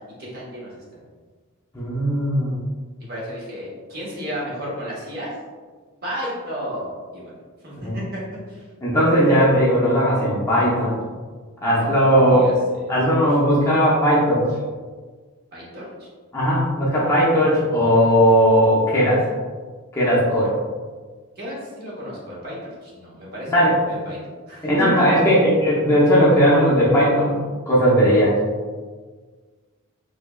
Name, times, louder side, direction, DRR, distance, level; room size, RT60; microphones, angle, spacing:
voice 1, 0.2-1.0 3.1-5.3 6.0-7.3 7.6-8.2 8.5-8.7 11.6-12.5 15.5-16.1 21.4-24.2 24.5-24.9, equal, 45° right, -6 dB, 0.9 m, -33 dB
voice 2, 1.7-2.5 7.8-7.9 8.8-10.9 11.6-12.5 12.9-14.4 16.3-19.2 19.9-20.5 23.5-23.7 24.6-27.3 27.7-28.4, equal, 15° left, -8 dB, 0.6 m, -17 dB
3.3 x 3.2 x 2.2 m, 1.5 s
head